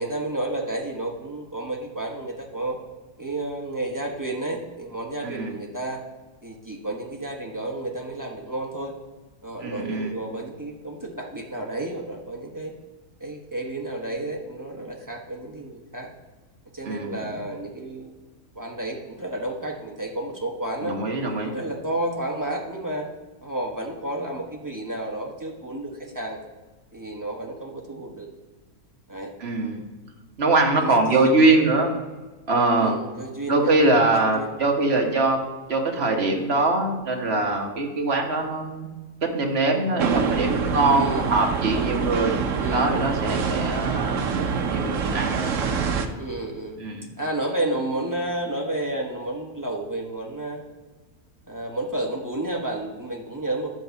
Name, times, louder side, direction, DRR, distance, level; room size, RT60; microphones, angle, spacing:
voice 1, 0.0-2.8 3.2-6.0 6.4-8.9 9.4-12.7 13.2-16.1 16.7-18.1 18.5-20.9 21.4-23.1 23.4-26.4 26.9-28.3 29.1-29.3 30.8-31.3 32.8-33.7 34.3-34.6 40.9-41.3 42.6-42.9 46.2-46.8 47.2-50.6 51.5-53.7, right 1 dB, 15° right, -1 dB, 1.1 m, -31 dB
voice 2, 5.2-5.5 9.6-10.1 16.8-17.3 20.8-21.6 29.4-29.8 30.4-31.9 32.5-32.9 33.5-35.4 35.7-38.9 39.3-42.4 42.7-45.6 46.8-47.1, right 2 dB, 45° right, 1 dB, 1.5 m, -23 dB
sound 1, 40.0-46.1, right 5 dB, 60° right, 1.1 m, -25 dB
12.0 x 4.0 x 7.1 m, 1.2 s
omnidirectional pair, 1.6 m